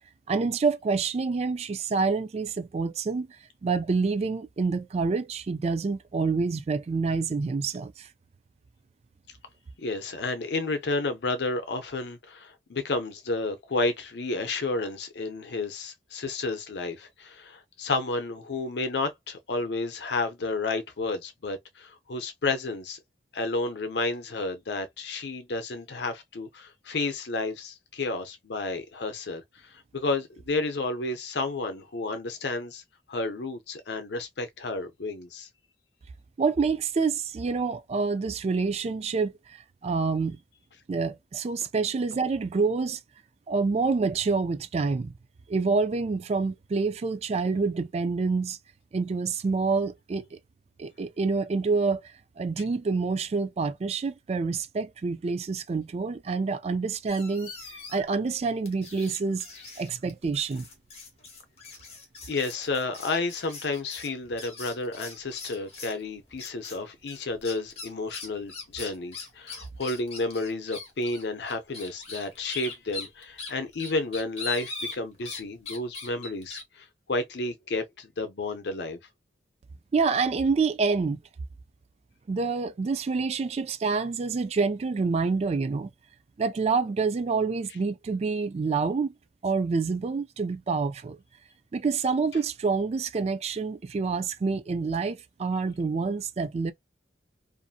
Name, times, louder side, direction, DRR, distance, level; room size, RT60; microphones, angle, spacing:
voice 1, 0.3-3.3 3.6-8.1 36.4-40.4 40.9-43.0 43.5-45.1 45.5-48.6 48.9-50.4 50.8-52.0 52.4-57.5 57.9-59.4 59.8-60.7 79.9-81.2 82.3-85.9 86.4-89.1 89.4-91.2 91.7-96.7, right 4 dB, 35° right, 0.3 m, -27 dB
voice 2, 9.8-23.0 23.3-32.8 33.1-35.5 62.3-79.0, left 3 dB, 70° left, 0.6 m, -31 dB
sound 1, 57.1-58.2 58.6-66.0 66.4-66.8 67.1-75.4 75.7-76.6, left 4 dB, 35° left, 1.1 m, -41 dB
2.6 x 2.6 x 2.4 m
head